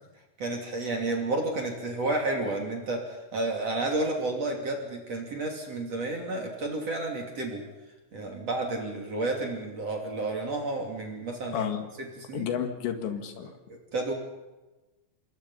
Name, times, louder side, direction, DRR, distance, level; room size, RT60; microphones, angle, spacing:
voice 1, 0.4-7.6 8.1-11.6 12.2-12.5 13.7-14.1, right 2 dB, 40° right, 1 dB, 3.3 m, -31 dB
voice 2, 11.5-11.9 12.3-13.5, left 8 dB, 70° left, 6 dB, 4.0 m, -31 dB
27.0 x 22.0 x 5.6 m, 1.1 s
omnidirectional pair, 5.5 m